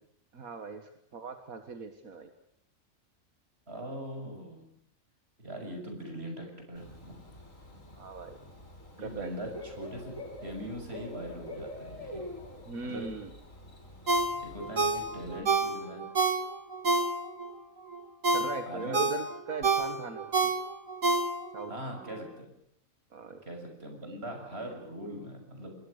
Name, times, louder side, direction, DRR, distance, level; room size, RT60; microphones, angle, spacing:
voice 1, 0.3-2.3 8.0-8.4 9.0-9.3 12.7-13.3 18.3-20.3 21.5-21.7 23.1-23.4, right 4 dB, 85° right, 7 dB, 2.2 m, -39 dB
voice 2, 3.7-4.7 5.4-7.2 9.0-12.2 12.8-13.1 14.4-16.0 18.7-19.0 21.7-22.5 23.4-25.8, equal, 45° right, 3 dB, 6.9 m, -41 dB
Bird / Cricket, 6.7-15.4, left 1 dB, 70° left, 7.2 m, -46 dB
Ringtone, 14.1-17.5 17.9-21.7 22.1-22.2, right 3 dB, 70° right, 3.0 m, -28 dB
27.0 x 21.5 x 6.7 m, 0.73 s
omnidirectional pair, 1.4 m